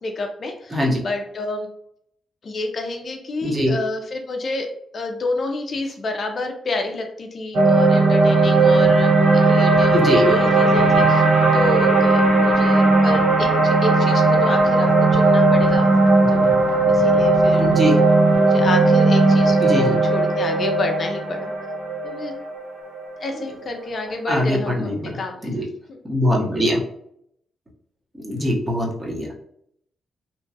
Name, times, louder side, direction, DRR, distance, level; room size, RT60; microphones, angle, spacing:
voice 1, 0.0-1.7 2.4-4.7 4.9-11.2 11.5-15.9 16.3-16.6 16.9-17.7 18.4-21.5 22.0-22.3 23.2-25.5 25.9-26.0, left 2 dB, 45° left, 4 dB, 0.4 m, -29 dB
voice 2, 3.4-3.7 9.9-10.2 17.6-18.0 19.6-20.0 24.3-25.6 26.1-26.8 28.2-29.4, equal, 20° right, -3 dB, 0.8 m, -22 dB
sound 1, 7.5-23.8, right 2 dB, 80° right, 0.7 m, -17 dB
2.9 x 2.3 x 2.6 m, 0.71 s
cardioid pair, 110°, 0 cm